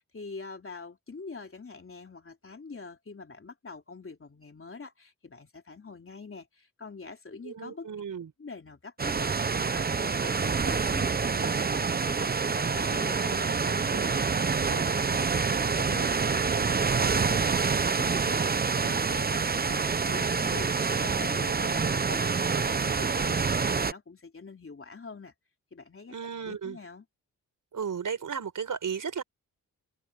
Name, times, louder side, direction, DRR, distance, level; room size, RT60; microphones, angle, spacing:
voice 1, 0.0-7.9 8.4-9.3 9.6-12.3 12.7-20.7 21.0-25.3 25.7-27.1, left 4 dB, 40° left, 3.7 m, -44 dB
voice 2, 7.4-8.3 14.0-14.1 26.1-26.8 27.7-29.2, right 6 dB, 60° right, 4.7 m, -34 dB
sound 1, 9.0-23.9, right 5 dB, 25° right, 0.8 m, -27 dB
open air
cardioid pair, 70°, 34 cm